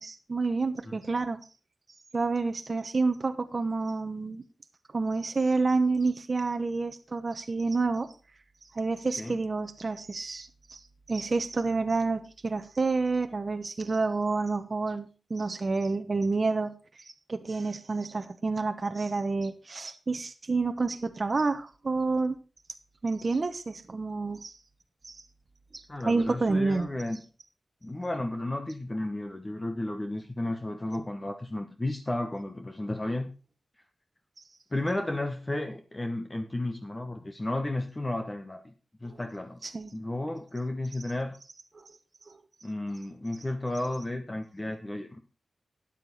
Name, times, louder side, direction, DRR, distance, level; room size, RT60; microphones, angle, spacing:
voice 1, 0.0-1.4 2.1-4.4 4.9-8.1 8.7-10.8 11.1-16.7 17.3-22.4 23.0-24.5 25.0-25.2 25.7-26.9 39.6-39.9 41.7-41.8 42.3-42.4, right 3 dB, 40° right, 7 dB, 1.0 m, -29 dB
voice 2, 25.9-27.2 27.8-33.3 34.7-38.7 39.0-39.6 39.9-41.4 42.6-45.2, left 1 dB, 20° left, 5 dB, 1.2 m, -33 dB
13.0 x 9.7 x 4.1 m, 0.33 s
wide cardioid pair, 135°, 0 cm